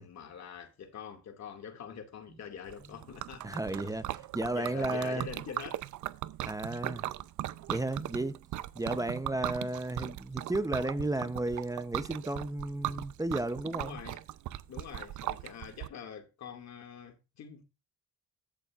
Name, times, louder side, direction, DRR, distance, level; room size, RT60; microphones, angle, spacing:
voice 1, 0.0-4.0 4.5-5.9 13.7-14.2 14.7-17.6, left 7 dB, 60° left, 2.4 m, -45 dB
Liquid, 2.7-15.9, right 14 dB, 75° right, 0.7 m, -39 dB
voice 2, 3.4-5.3 6.4-7.0 7.7-8.4 8.7-14.0, right 2 dB, 10° right, 0.8 m, -33 dB
14.0 x 7.0 x 2.5 m
cardioid pair, 90°, 30 cm